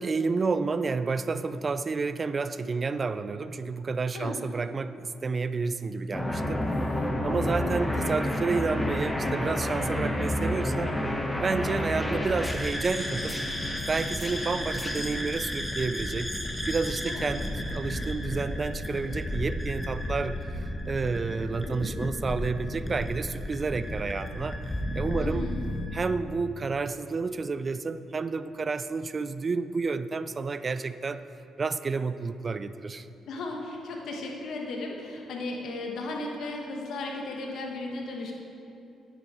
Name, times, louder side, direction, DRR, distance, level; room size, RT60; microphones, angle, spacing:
voice 1, 0.0-6.7 7.2-11.0 11.4-13.4 13.9-16.3 16.7-24.6 25.0-25.5 25.9-31.2 31.6-33.1, right 4 dB, 35° right, 12 dB, 0.4 m, -30 dB
sound 1, 6.1-25.9, left 1 dB, 10° left, 1.1 m, -31 dB
voice 2, 25.2-25.6 33.3-38.3, left 2 dB, 70° left, 0 dB, 1.4 m, -35 dB
10.0 x 9.6 x 4.4 m, 2.7 s
cardioid pair, 90°, 0 cm